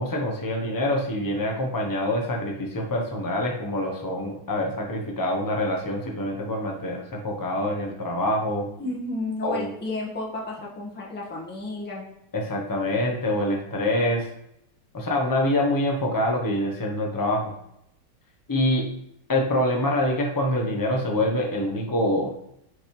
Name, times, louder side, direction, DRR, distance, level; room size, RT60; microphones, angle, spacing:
voice 1, 0.0-8.7 9.4-9.7 12.3-14.3 14.9-17.5 18.5-18.9 19.3-22.4, left 1 dB, 25° left, 0 dB, 0.4 m, -25 dB
voice 2, 8.8-12.0, left 2 dB, 5° left, -5 dB, 1.2 m, -32 dB
6.9 x 5.3 x 3.2 m, 0.77 s
omnidirectional pair, 2.2 m